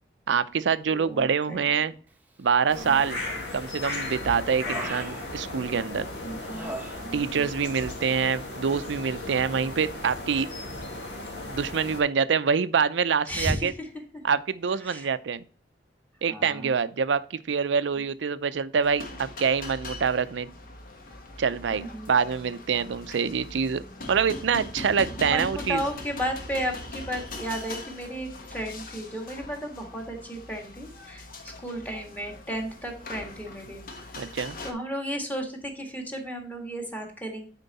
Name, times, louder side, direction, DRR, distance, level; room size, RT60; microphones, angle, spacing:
voice 1, 0.3-1.9 2.4-3.2 3.5-6.1 7.1-10.5 11.5-13.7 14.2-15.4 16.2-20.5 21.4-23.8 24.1-25.8 34.2-34.6, right 6 dB, 80° right, 0.5 m, -25 dB
voice 2, 0.9-1.6 2.8-3.0 6.2-7.5 13.3-13.9 14.1-14.2 14.8-15.1 16.3-16.8 21.7-22.2 24.9-33.8 34.1-34.3 34.6-37.5, equal, 10° left, 1.6 m, -34 dB
sound 1, 2.7-12.0, left 2 dB, 80° left, 2.1 m, -36 dB
Human voice, 2.8-3.4 3.8-6.0 6.4-7.5 7.7-8.0, right 1 dB, 10° right, 0.9 m, -41 dB
sound 2, 18.8-34.7, left 2 dB, 55° left, 1.2 m, -41 dB
9.1 x 4.4 x 4.1 m
head